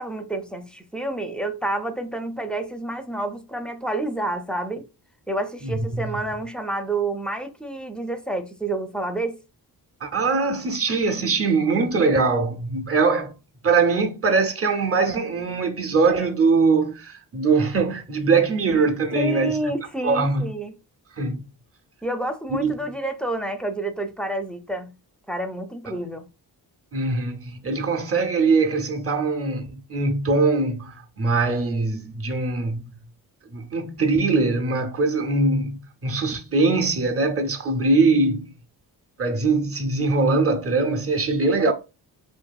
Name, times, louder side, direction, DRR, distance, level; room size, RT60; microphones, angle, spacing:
voice 1, 0.0-4.8 5.3-9.4 19.1-20.8 22.0-24.9 25.3-26.3, right 2 dB, ahead, 0.5 m, -29 dB
voice 2, 5.6-6.2 10.0-13.3 13.6-19.6 20.0-20.5 21.2-21.4 22.5-22.7 26.9-33.0 33.5-38.6 39.2-41.7, right 3 dB, 35° right, 0.7 m, -22 dB
2.6 x 2.5 x 2.3 m
cardioid pair, 70°, 40 cm